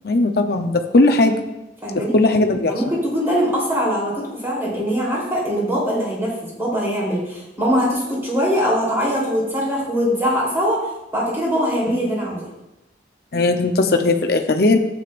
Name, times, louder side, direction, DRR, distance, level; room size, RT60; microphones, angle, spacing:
voice 1, 0.0-1.4 2.1-2.7 11.9-12.0 13.3-14.8, left 2 dB, 55° left, 4 dB, 0.7 m, -17 dB
voice 2, 1.8-2.1 2.7-10.9 11.1-12.5, equal, 15° right, -6 dB, 3.4 m, -22 dB
12.5 x 8.6 x 2.5 m, 0.94 s
head